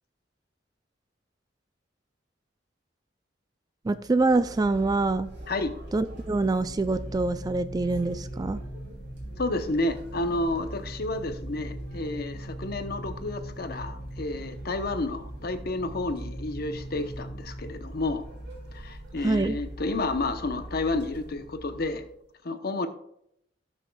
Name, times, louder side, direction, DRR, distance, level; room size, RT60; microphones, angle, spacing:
voice 1, 3.8-5.3 5.9-8.6 19.2-19.6, right 3 dB, 20° right, 13 dB, 0.3 m, -25 dB
sound 1, 3.9-22.2, right 1 dB, 65° right, 2.9 m, -42 dB
sound 2, 6.3-19.6, right 1 dB, 75° left, 1.6 m, -43 dB
voice 2, 9.4-18.2 18.7-22.0 22.4-22.9, left 2 dB, 55° left, 8 dB, 0.8 m, -30 dB
17.0 x 6.3 x 2.3 m, 0.73 s
head